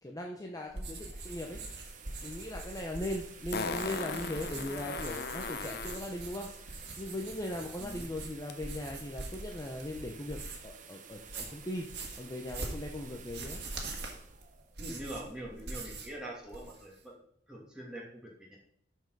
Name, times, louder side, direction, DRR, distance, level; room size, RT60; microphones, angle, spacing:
voice 1, 0.0-1.6 2.2-6.5 7.0-10.4 10.6-11.9 12.2-13.6, left 1 dB, 20° left, 1 dB, 0.8 m, -39 dB
sound 1, 0.7-10.8 11.1-16.2 16.4-17.0, right 2 dB, 65° right, 1.8 m, -43 dB
sound 2, 0.8-15.7, right 6 dB, 45° right, 0.9 m, -53 dB
Fart, 2.4-2.5 3.5-6.1 8.5-8.6, left 5 dB, 60° left, 0.7 m, -37 dB
voice 2, 14.8-17.1 17.5-18.6, right 1 dB, 5° right, -4 dB, 2.5 m, -44 dB
11.5 x 4.7 x 4.7 m, 0.67 s
head